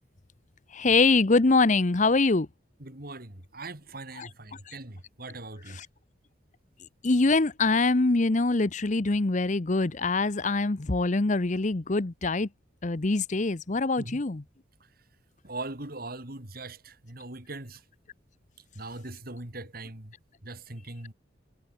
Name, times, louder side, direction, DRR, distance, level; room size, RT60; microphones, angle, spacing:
voice 1, 0.7-2.5 4.2-4.3 4.7-4.8 5.7-5.9 7.0-12.5 12.8-14.4, left 3 dB, 40° left, 0.8 m, -24 dB
voice 2, 2.8-5.8 14.0-14.2 15.4-17.8 18.7-20.1 20.4-21.1, right 2 dB, 50° right, 3.1 m, -40 dB
head